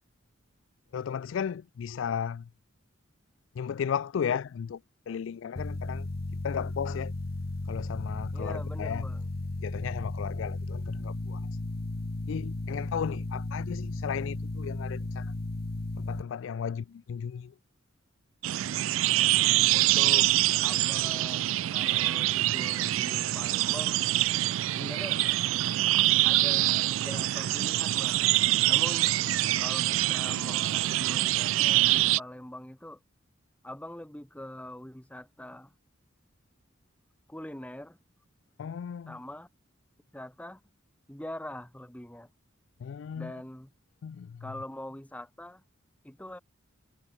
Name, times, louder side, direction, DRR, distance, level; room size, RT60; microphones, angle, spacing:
voice 1, 0.9-2.5 3.6-4.8 5.1-6.1 6.4-7.1 7.7-9.1 9.6-11.5 12.3-15.3 16.0-17.5 38.6-39.2 42.8-43.3 44.0-44.5, left 7 dB, 70° left, 0.3 m, -35 dB
sound 1, 5.6-16.2, left 2 dB, 50° left, 0.8 m, -35 dB
voice 2, 8.3-9.2 19.7-20.3 20.6-24.0 24.7-25.2 26.2-28.3 28.6-29.1 29.6-33.0 33.6-35.7 37.3-38.0 39.1-39.5 40.1-40.6 41.1-42.3 43.1-43.7 44.4-45.6 46.0-46.4, left 1 dB, 5° left, 1.1 m, -43 dB
sound 2, 18.4-32.2, right 15 dB, 80° right, 0.3 m, -25 dB
head